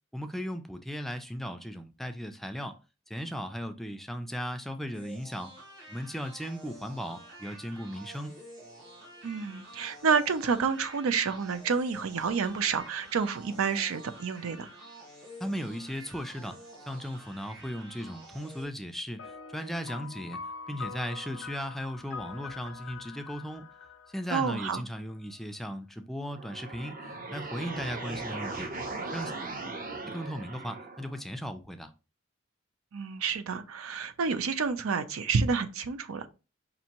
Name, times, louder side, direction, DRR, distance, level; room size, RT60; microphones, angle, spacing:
voice 1, 0.1-2.8 3.1-5.5 5.9-8.4 15.4-16.6 16.9-20.4 20.7-23.7 24.1-27.0 27.3-28.7 29.1-29.3 30.1-31.9, equal, ahead, 0.3 m, -37 dB
sound 1, 4.9-18.6, right 1 dB, 65° right, 1.8 m, -49 dB
voice 2, 9.2-14.7 24.3-24.8 32.9-36.3, right 5 dB, 90° right, 0.5 m, -29 dB
sound 2, 19.2-25.0, left 5 dB, 75° left, 0.5 m, -44 dB
sound 3, 26.2-31.2, right 3 dB, 40° right, 0.7 m, -38 dB
5.4 x 2.6 x 2.9 m
head